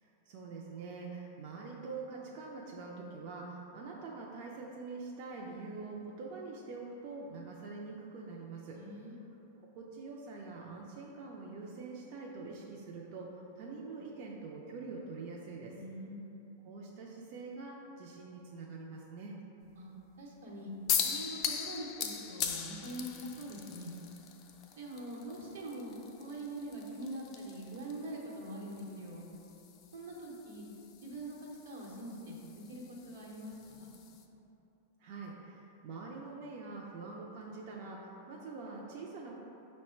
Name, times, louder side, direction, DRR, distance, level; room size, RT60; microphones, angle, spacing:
voice 1, 0.0-8.8 9.6-15.8 16.6-19.3 35.0-39.4, right 4 dB, 50° right, -2 dB, 0.4 m, -45 dB
voice 2, 8.7-9.1 15.7-16.5 19.8-20.7 21.0-23.9 24.7-25.9 26.2-29.3 29.9-30.6 31.0-33.9, right 1 dB, 85° right, -3 dB, 0.9 m, -44 dB
sound 1, 20.9-34.2, left 8 dB, 35° left, 0.4 m, -41 dB
5.5 x 2.1 x 4.3 m, 3.0 s
supercardioid pair, 140°, 0 cm